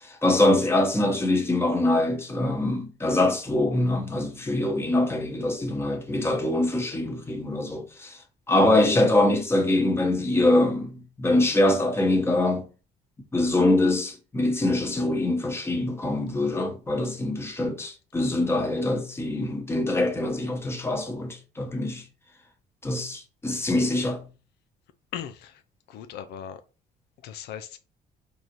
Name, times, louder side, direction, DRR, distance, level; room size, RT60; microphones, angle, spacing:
voice 1, 0.1-8.2 8.5-12.7 13.3-22.0 22.8-24.2, left 2 dB, 15° left, 1.1 m, -24 dB
voice 2, 25.1-25.5 25.9-26.6 27.2-27.8, left 9 dB, 75° left, 0.5 m, -37 dB
4.0 x 2.7 x 4.6 m
cardioid pair, 110°, 17 cm